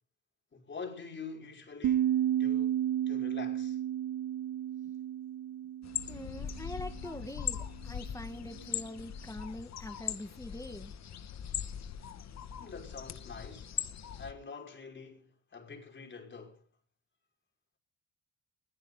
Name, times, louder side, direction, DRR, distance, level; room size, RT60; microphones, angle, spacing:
voice 1, 0.5-3.8 12.6-13.8 14.2-16.6, left 5 dB, 40° left, 5.6 m, -46 dB
sound 1, 1.8-7.0, right 11 dB, 80° right, 1.6 m, -32 dB
sound 2, 5.8-14.3, left 9 dB, 60° left, 1.9 m, -40 dB
voice 2, 6.1-10.9, left 1 dB, 10° left, 2.0 m, -44 dB
21.5 x 16.0 x 4.1 m
cardioid pair, 90°, 30 cm